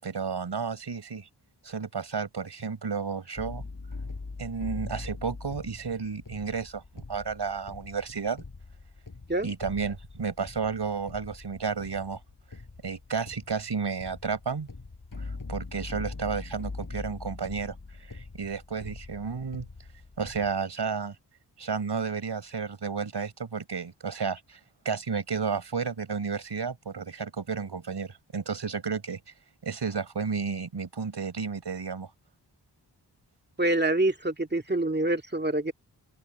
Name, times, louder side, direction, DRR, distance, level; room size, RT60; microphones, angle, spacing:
voice 1, 0.0-1.3 1.6-3.6 4.4-6.8 7.1-8.4 9.4-12.2 12.8-14.7 15.2-17.7 18.1-19.7 20.2-21.1 21.6-24.6 24.8-29.2 29.6-32.1, right 5 dB, 70° right, 5.8 m, -32 dB
sound 1, 3.4-20.5, left 3 dB, 50° left, 7.9 m, -42 dB
voice 2, 33.6-35.7, right 2 dB, 25° right, 2.2 m, -26 dB
open air
cardioid pair, 40°, 43 cm